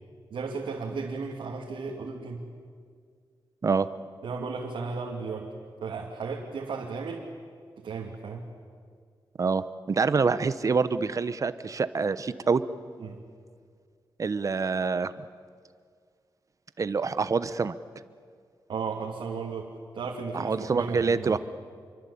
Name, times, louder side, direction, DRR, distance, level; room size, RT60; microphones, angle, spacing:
voice 1, 0.3-2.4 4.2-5.5 5.8-7.3 7.8-8.4 13.0-13.2 18.7-21.4, right 4 dB, 90° right, -1 dB, 2.7 m, -35 dB
voice 2, 9.4-12.6 14.2-15.1 16.8-17.8 20.3-21.4, right 4 dB, 40° right, 14 dB, 1.0 m, -26 dB
28.0 x 24.0 x 8.6 m, 2.1 s
wide cardioid pair, 135°, 8 cm